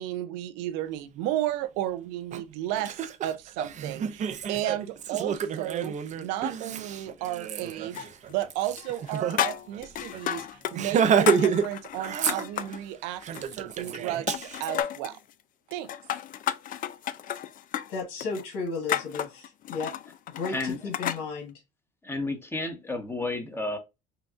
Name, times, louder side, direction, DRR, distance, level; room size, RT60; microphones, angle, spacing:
voice 1, 0.0-8.0 8.3-15.2 15.7-15.9, right 13 dB, 90° right, 0.6 m, -33 dB
Laughter, 2.3-2.4 2.8-9.4 9.7-9.8 10.1-10.3 10.7-11.7 12.0-12.8 13.2-14.7, right 7 dB, 40° right, 0.6 m, -29 dB
sound 1, 7.9-8.5 8.8-10.8 11.0-12.8 13.2-14.0 14.3-15.2 15.7-21.2, left 10 dB, 50° left, 0.4 m, -32 dB
voice 2, 17.9-19.9 20.3-21.5, left 4 dB, 75° left, 1.6 m, -34 dB
voice 3, 20.5-20.8 22.0-23.8, left 2 dB, 10° left, 1.1 m, -31 dB
5.6 x 2.3 x 2.5 m
cardioid pair, 105°, 19 cm